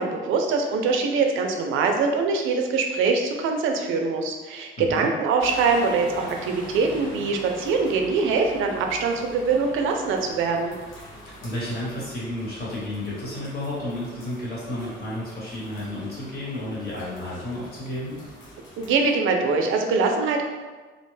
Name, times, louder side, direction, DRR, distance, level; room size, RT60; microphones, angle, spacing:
voice 1, 0.0-10.7 18.8-20.4, right 4 dB, 80° right, 3 dB, 0.4 m, -23 dB
sound 1, 5.4-19.2, equal, 85° left, 1.0 m, -44 dB
voice 2, 11.2-18.2, left 1 dB, 50° left, -7 dB, 1.2 m, -32 dB
2.4 x 2.1 x 3.1 m, 1.3 s
cardioid pair, 90°, 20 cm